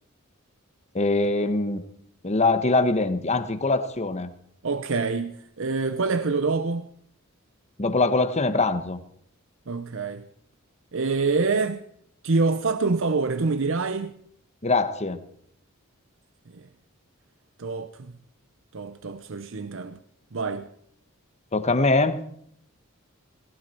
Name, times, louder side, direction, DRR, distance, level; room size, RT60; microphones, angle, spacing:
voice 1, 0.9-1.8 2.2-4.3 7.8-9.0 14.6-15.2 21.5-22.2, left 3 dB, 30° left, 1.3 m, -23 dB
voice 2, 4.6-6.9 9.7-10.2 10.9-11.8 12.2-14.1 16.5-16.7 17.6-18.1 18.7-20.0 20.3-20.6, right 4 dB, 65° right, 0.8 m, -26 dB
18.5 x 17.0 x 4.5 m
head